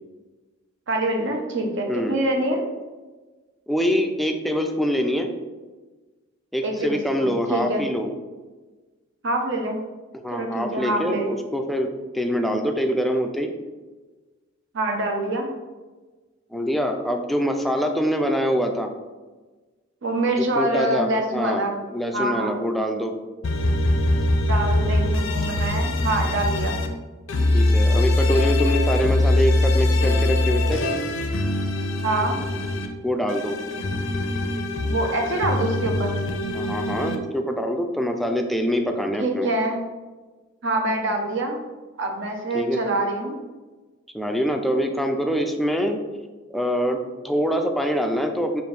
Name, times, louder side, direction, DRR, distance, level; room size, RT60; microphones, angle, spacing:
voice 1, 0.9-2.6 6.6-7.8 9.2-9.8 10.3-11.3 14.7-15.5 20.0-21.7 22.1-22.5 24.4-26.8 32.0-32.4 34.8-36.2 39.2-39.8 40.6-41.6 42.0-43.3, right 1 dB, 65° right, 2 dB, 0.7 m, -25 dB
voice 2, 1.9-2.2 3.7-5.3 6.5-8.1 10.2-13.5 16.5-18.9 20.4-23.1 27.5-30.8 33.0-33.6 36.5-39.5 42.5-42.8 44.1-46.0 46.5-47.0 47.2-48.6, equal, ahead, 4 dB, 0.3 m, -24 dB
sound 1, 23.4-26.9 27.3-32.9 33.3-37.2, left 1 dB, 85° left, 0.6 m, -22 dB
5.3 x 2.6 x 3.3 m, 1.3 s
head